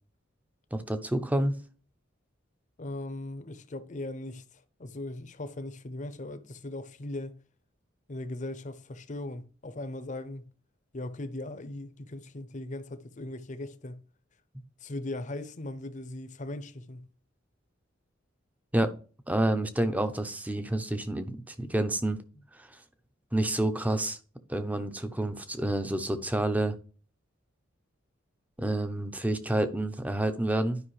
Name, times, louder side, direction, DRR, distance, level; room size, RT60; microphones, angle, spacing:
voice 1, 0.7-1.6 18.7-18.9 19.3-22.2 22.6-22.7 23.3-24.2 24.5-26.8 28.6-30.8, right 1 dB, 10° right, 0.6 m, -28 dB
voice 2, 2.8-7.3 8.1-10.5 10.9-14.0 14.8-17.1, left 1 dB, 40° left, 0.7 m, -39 dB
11.0 x 5.2 x 3.2 m
head